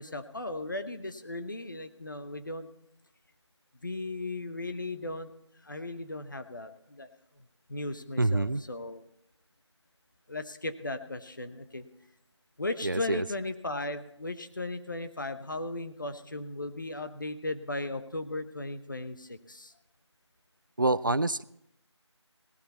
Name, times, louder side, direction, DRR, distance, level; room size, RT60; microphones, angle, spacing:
voice 1, 0.0-2.7 3.8-5.3 5.6-7.1 7.7-9.0 10.3-11.9 12.6-19.7, left 2 dB, 40° left, 9 dB, 0.9 m, -36 dB
voice 2, 8.2-8.6 12.8-13.2 20.8-21.4, right 2 dB, 45° right, 19 dB, 0.4 m, -26 dB
17.5 x 11.5 x 4.2 m, 0.78 s
figure-of-eight pair, 170°, 15 cm